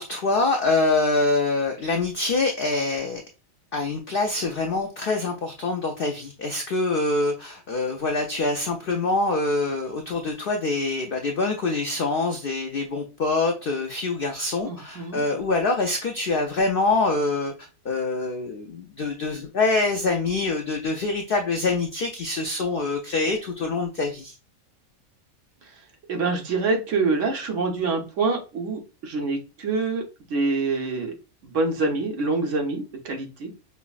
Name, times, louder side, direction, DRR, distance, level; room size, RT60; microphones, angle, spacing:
voice 1, 0.0-3.2 3.7-24.3, left 3 dB, 70° left, 3 dB, 0.5 m, -25 dB
voice 2, 14.6-15.2 26.1-30.0 30.3-31.1 31.4-33.5, right 3 dB, 65° right, 2 dB, 1.1 m, -26 dB
5.5 x 2.0 x 2.3 m, 0.31 s
omnidirectional pair, 1.5 m